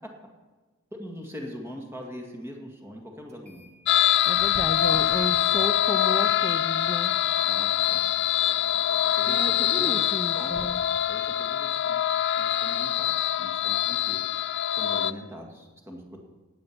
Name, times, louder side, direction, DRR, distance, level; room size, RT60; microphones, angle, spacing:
voice 1, 0.9-3.7 7.4-8.0 9.2-10.6 11.1-12.0 12.4-14.3 14.7-16.2, equal, 10° right, 1 dB, 2.1 m, -41 dB
sound 1, 3.3-3.8 4.1-12.6, equal, 30° right, 2.0 m, -49 dB
sound 2, 3.9-15.1, left 11 dB, 55° left, 0.3 m, -24 dB
voice 2, 4.3-7.1 9.2-10.8, left 1 dB, 10° left, 4 dB, 0.6 m, -33 dB
16.5 x 9.5 x 6.0 m, 1.3 s
head